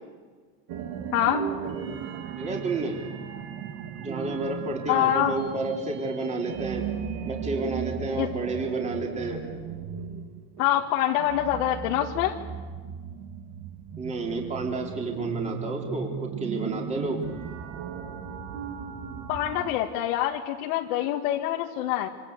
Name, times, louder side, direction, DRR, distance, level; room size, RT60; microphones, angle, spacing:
sound 1, 0.7-19.7, right 7 dB, 50° right, 3.0 m, -36 dB
voice 1, 1.1-1.4 4.9-5.3 8.2-8.3 10.6-12.4 19.3-22.1, left 12 dB, 80° left, 0 dB, 2.1 m, -25 dB
voice 2, 2.4-3.0 4.0-6.9 7.3-9.4 14.0-17.3, right 2 dB, 15° right, 0 dB, 3.7 m, -30 dB
27.0 x 26.5 x 8.2 m, 1.5 s
cardioid pair, 170°, 43 cm